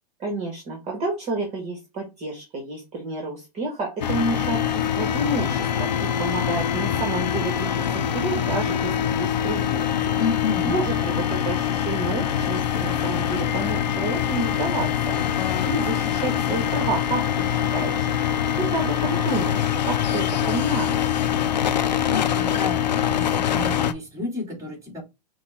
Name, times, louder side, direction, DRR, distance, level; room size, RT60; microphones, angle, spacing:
voice 1, 0.2-10.2 10.6-18.1 18.6-21.3, right 2 dB, 30° right, 1.8 m, -30 dB
sound 1, 4.0-23.9, left 9 dB, 85° left, 0.6 m, -24 dB
voice 2, 10.2-10.8 21.7-25.0, left 3 dB, 15° right, 2.7 m, -31 dB
Wind instrument woodwind instrument, 13.4-18.8, left 10 dB, 25° left, 1.2 m, -38 dB
5.7 x 2.5 x 3.5 m
hypercardioid pair, 115°, 21 cm